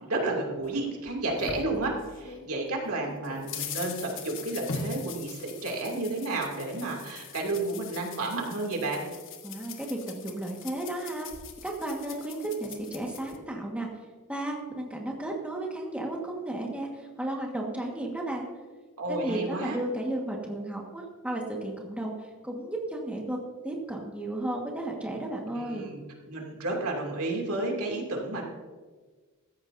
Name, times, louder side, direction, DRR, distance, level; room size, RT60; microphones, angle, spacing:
voice 1, 0.0-9.1 19.0-19.8 25.5-26.0 26.3-28.4, right 2 dB, 75° right, 0 dB, 2.6 m, -31 dB
sound 1, 0.6-2.5 2.9-13.4, left 4 dB, 60° left, 1.3 m, -42 dB
voice 2, 9.4-11.3 11.6-13.9 14.3-18.5 19.1-23.4 23.6-25.9, right 1 dB, 5° right, -1 dB, 1.5 m, -34 dB
15.5 x 14.0 x 2.7 m, 1.4 s
head